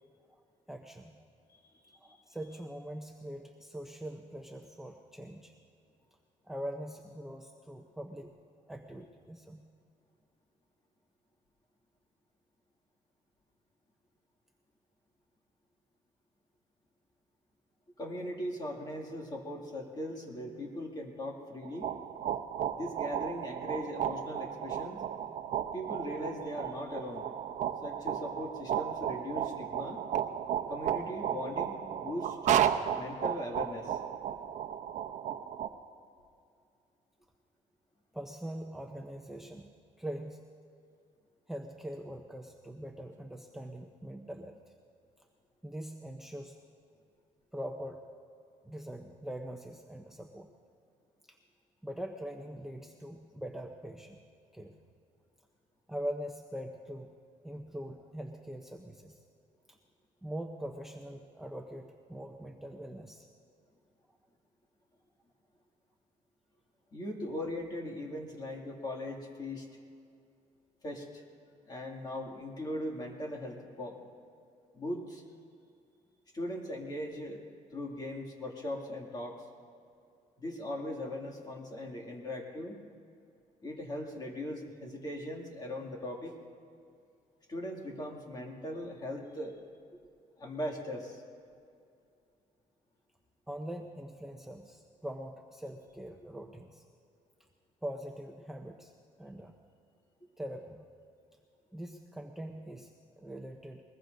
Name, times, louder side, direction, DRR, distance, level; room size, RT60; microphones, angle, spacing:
voice 1, 0.7-1.2 1.9-5.5 6.5-8.3 8.7-9.6 38.1-39.7 40.0-40.4 41.5-44.6 45.6-46.6 47.5-48.0 48.6-50.5 51.3-51.4 51.8-54.2 54.5-54.7 55.9-57.1 57.4-59.2 59.7-59.8 60.2-63.3 67.4-67.5 93.5-96.9 97.8-98.9 99.2-99.5 100.4-100.9 101.7-103.8, equal, 5° right, 2 dB, 0.7 m, -42 dB
voice 2, 1.5-2.0 18.0-21.9 22.7-25.0 25.7-27.3 27.8-30.0 30.7-32.4 32.9-34.0 66.9-69.7 70.8-71.2 71.7-74.1 74.7-75.2 76.3-77.4 77.7-79.4 80.4-82.8 83.6-86.3 87.5-89.6 90.4-91.2, left 1 dB, 30° left, 0 dB, 2.3 m, -39 dB
sound 1, 21.6-35.7, right 9 dB, 60° right, 0.7 m, -34 dB
22.0 x 20.0 x 2.7 m, 2.5 s
cardioid pair, 130°, 14 cm